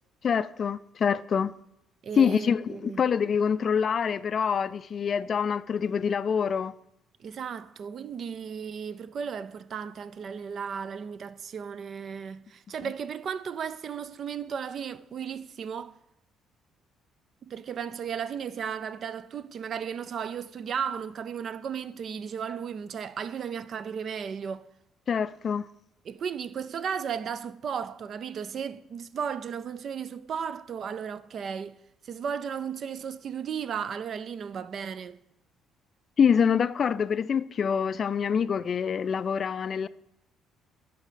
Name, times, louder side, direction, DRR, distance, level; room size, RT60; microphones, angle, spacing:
voice 1, 0.2-1.5 2.2-6.7 25.1-25.6 36.2-39.9, left 7 dB, 45° left, 0.3 m, -25 dB
voice 2, 2.0-3.0 7.2-16.0 17.4-24.7 26.0-31.8 32.0-35.2, right 7 dB, 55° right, 0.4 m, -35 dB
11.0 x 4.1 x 5.0 m
cardioid pair, 85°, 0 cm